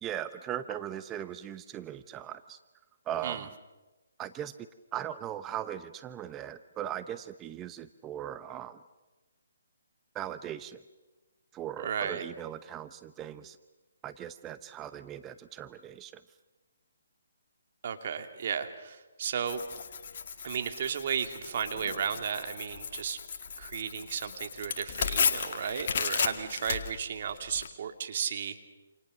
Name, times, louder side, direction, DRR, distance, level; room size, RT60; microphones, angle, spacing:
voice 1, 0.0-2.6 3.1-3.5 4.2-8.8 10.1-10.8 11.5-13.6 14.0-16.2, right 11 dB, 15° right, 12 dB, 0.8 m, -39 dB
voice 2, 11.8-12.3 17.8-19.6 20.4-23.2 23.6-28.7, right 7 dB, 50° right, 6 dB, 2.6 m, -34 dB
Tearing, 19.5-27.7, left 6 dB, 50° left, 2.2 m, -34 dB
29.0 x 28.0 x 6.6 m, 1.2 s
figure-of-eight pair, 145°, 0 cm